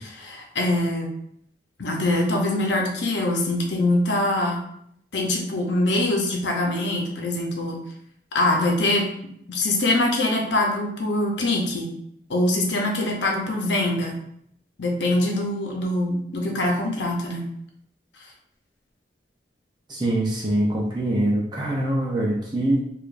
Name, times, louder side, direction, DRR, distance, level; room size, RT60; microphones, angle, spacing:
voice 1, 0.2-1.1 1.8-4.6 5.1-7.8 8.3-9.0 9.5-11.9 12.3-14.2 14.8-17.4, left 1 dB, 90° left, 0 dB, 0.8 m, -23 dB
voice 2, 19.9-22.8, right 1 dB, 25° right, -4 dB, 0.6 m, -23 dB
4.8 x 2.5 x 2.5 m, 0.72 s
head